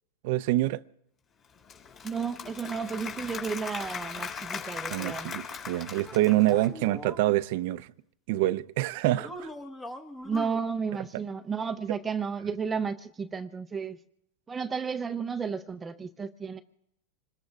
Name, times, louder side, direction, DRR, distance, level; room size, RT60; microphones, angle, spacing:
voice 1, 0.2-0.8 4.9-7.9 8.3-9.5, right 16 dB, 60° right, 0.6 m, -26 dB
Applause / Crowd, 1.4-6.8, left 6 dB, 30° left, 3.8 m, -39 dB
voice 2, 2.0-5.3 10.2-14.0 14.5-16.6, right 6 dB, 15° right, 0.6 m, -33 dB
sound 1, 6.0-7.3 9.1-10.6, left 1 dB, 15° left, 1.2 m, -41 dB
26.5 x 21.0 x 2.4 m
supercardioid pair, 130°, 0 cm